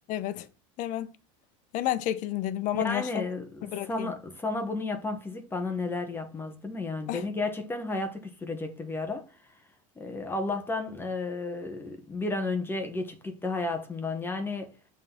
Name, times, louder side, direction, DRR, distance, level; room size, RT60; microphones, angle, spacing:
voice 1, 0.1-0.5 0.8-1.1 1.7-3.2 3.7-4.1 7.1-7.2, left 13 dB, 50° left, 1.0 m, -30 dB
voice 2, 2.7-9.3 10.0-14.7, left 3 dB, 15° left, 1.3 m, -32 dB
7.5 x 4.0 x 5.9 m
supercardioid pair, 135°, 17 cm